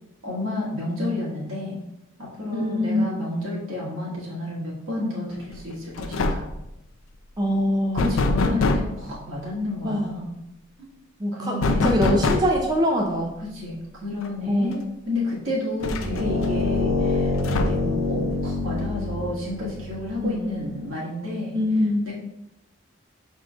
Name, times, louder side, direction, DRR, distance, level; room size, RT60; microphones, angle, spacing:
voice 1, 0.2-1.8 2.2-6.5 7.9-10.3 10.8-10.9 11.3-12.0 13.4-21.6 22.0-22.1, left 2 dB, 80° right, -5 dB, 1.6 m, -30 dB
voice 2, 2.5-3.1 7.4-8.1 9.8-10.0 11.2-13.3 14.5-14.7 20.2-20.3 21.5-22.0, equal, 20° right, 0 dB, 0.4 m, -23 dB
sound 1, 5.5-5.7 6.0-6.6 8.0-9.0 11.6-12.7 14.2-14.3 14.7-14.8 15.8-16.5 17.4-18.0, left 2 dB, 85° left, 0.4 m, -24 dB
sound 2, 15.9-20.2, left 2 dB, 50° right, 1.1 m, -26 dB
6.1 x 3.6 x 2.4 m, 0.88 s
head